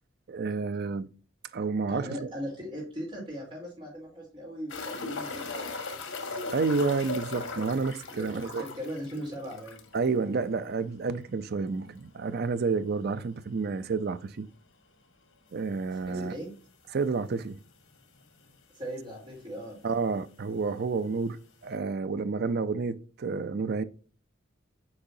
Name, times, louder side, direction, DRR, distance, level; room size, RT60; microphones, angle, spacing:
voice 1, 0.3-1.1 1.5-2.3 6.5-8.7 9.9-14.5 15.5-16.4 16.9-17.6 19.8-21.4 21.6-23.8, right 4 dB, 55° right, 0.5 m, -30 dB
voice 2, 1.9-6.5 8.1-9.9 15.9-16.5 18.7-19.8, equal, 30° right, 3.6 m, -39 dB
sound 1, 4.7-10.1 10.4-10.5 10.8-10.9 13.7-13.8 15.5-15.6 16.3-16.4 16.7-16.8 17.7-17.8 17.9-18.5 19.5-19.6, left 3 dB, 80° left, 1.5 m, -38 dB
8.7 x 4.8 x 2.7 m
head